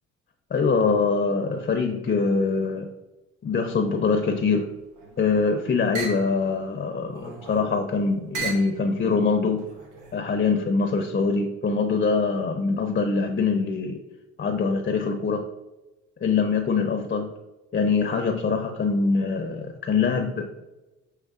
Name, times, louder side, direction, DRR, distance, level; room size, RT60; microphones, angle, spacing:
voice 1, 0.5-2.9 3.4-4.7 5.2-9.7 10.1-14.0 14.4-15.5 16.2-17.3 17.7-20.5, left 4 dB, 30° left, 5 dB, 0.5 m, -23 dB
sound 1, 4.8-5.4 5.9-6.3 7.1-7.7 8.3-8.7 9.6-10.2, right 3 dB, 90° right, 0.9 m, -35 dB
6.4 x 3.1 x 2.4 m, 1.1 s
cardioid pair, 90°, 30 cm